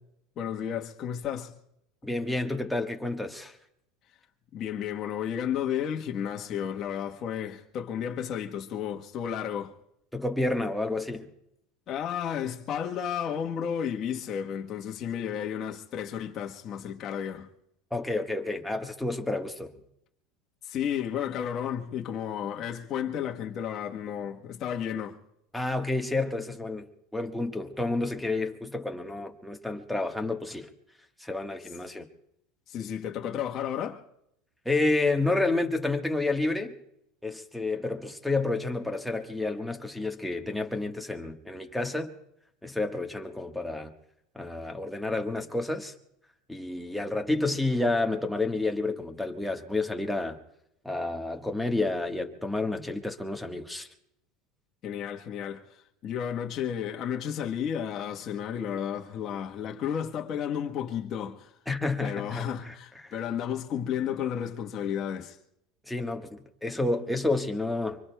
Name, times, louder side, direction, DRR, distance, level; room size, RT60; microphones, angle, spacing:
voice 1, 0.4-1.5 4.5-9.7 11.9-17.5 20.6-25.2 32.7-34.0 54.8-55.8 56.0-61.5 62.0-65.4, left 9 dB, 45° left, 1.2 m, -32 dB
voice 2, 2.0-3.5 10.1-11.3 17.9-19.8 25.5-26.9 27.1-30.7 31.2-32.1 34.6-36.7 37.2-42.1 42.6-43.9 44.3-45.9 46.5-50.4 50.8-53.9 61.7-62.7 63.0-63.1 65.9-68.0, left 2 dB, ahead, 1.3 m, -30 dB
24.5 x 24.5 x 2.3 m
supercardioid pair, 120°, 0 cm